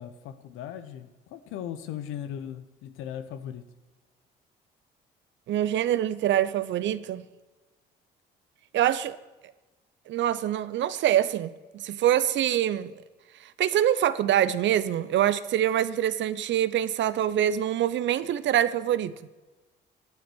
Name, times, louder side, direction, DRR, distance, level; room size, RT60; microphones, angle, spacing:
voice 1, 0.0-3.7, left 9 dB, 80° left, 1.0 m, -38 dB
voice 2, 5.5-7.2 8.7-9.2 10.1-12.9 13.4-19.1, right 11 dB, 65° right, 0.7 m, -25 dB
12.0 x 9.5 x 6.3 m
supercardioid pair, 60°, 21 cm